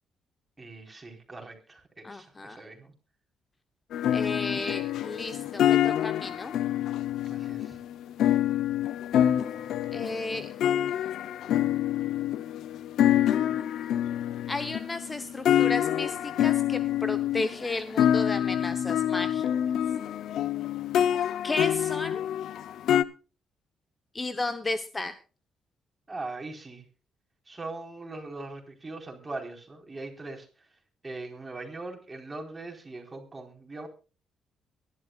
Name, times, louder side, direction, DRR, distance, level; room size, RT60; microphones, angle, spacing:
voice 1, 0.6-2.9 7.3-7.8 26.1-26.8 27.5-30.5 31.0-33.9, right 2 dB, 20° right, 3 dB, 4.1 m, -40 dB
voice 2, 2.0-2.6 4.1-6.6 9.9-10.5 14.5-19.5 21.4-22.3 24.1-25.1, left 2 dB, 25° left, 10 dB, 0.9 m, -33 dB
sound 1, 3.9-23.0, left 11 dB, 75° left, 0.6 m, -26 dB
23.0 x 11.5 x 2.4 m, 0.34 s
cardioid pair, 90°, 0 cm